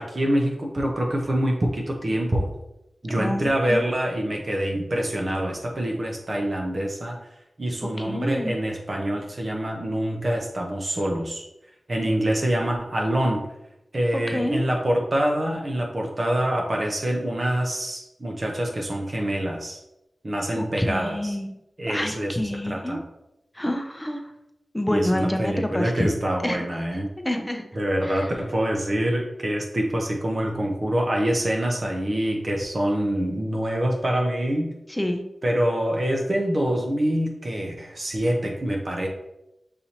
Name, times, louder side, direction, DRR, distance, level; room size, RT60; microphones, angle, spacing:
voice 1, 0.0-2.5 3.0-7.2 7.6-11.4 11.9-13.4 13.9-19.8 20.2-21.4 21.8-23.0 24.9-27.1 27.8-34.7 35.4-39.1, right 1 dB, 50° right, 0 dB, 0.8 m, -25 dB
voice 2, 3.2-3.9 8.1-8.5 14.3-14.6 20.5-21.5 21.9-23.0 23.6-24.2 24.7-26.1 26.4-26.6 27.2-27.6 28.0-28.3 34.9-35.2, left 1 dB, 15° left, 5 dB, 0.6 m, -27 dB
6.7 x 2.7 x 2.9 m, 0.87 s
cardioid pair, 45°, 0 cm